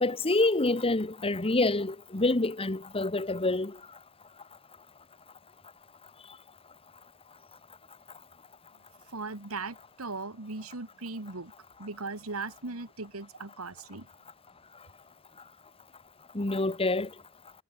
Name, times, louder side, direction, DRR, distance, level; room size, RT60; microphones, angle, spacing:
voice 1, 0.0-3.7 16.3-17.1, left 2 dB, 25° left, 1.3 m, -27 dB
voice 2, 9.1-11.5 11.8-14.1, right 3 dB, 80° right, 2.1 m, -38 dB
head